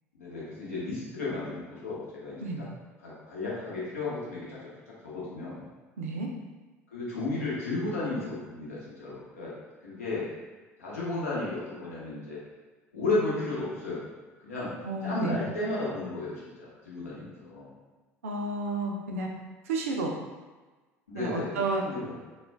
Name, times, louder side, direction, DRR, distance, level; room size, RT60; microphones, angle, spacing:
voice 1, 0.1-2.6 3.0-4.6 5.0-5.6 6.9-9.5 9.8-10.3 10.8-12.4 12.9-14.0 14.4-14.7 15.0-17.7 21.1-22.2, left 2 dB, 80° left, -8 dB, 0.8 m, -33 dB
voice 2, 6.0-6.3 14.8-15.4 18.2-19.3 19.7-20.1 21.1-21.8, right 3 dB, 75° right, 1 dB, 0.4 m, -31 dB
2.3 x 2.1 x 3.3 m, 1.3 s
figure-of-eight pair, 65°, 8 cm